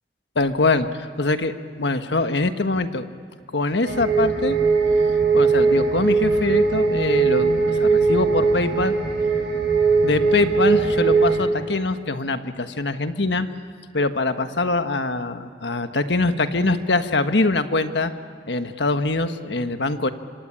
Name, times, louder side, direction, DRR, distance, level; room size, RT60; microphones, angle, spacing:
voice 1, 0.3-3.1 3.5-4.6 5.3-8.9 10.0-13.5 13.9-18.1 18.5-20.1, left 2 dB, 85° left, 8 dB, 1.4 m, -23 dB
sound 1, 3.8-11.4, right 4 dB, 85° right, 7.5 m, -20 dB
26.0 x 25.5 x 8.8 m, 2.2 s
head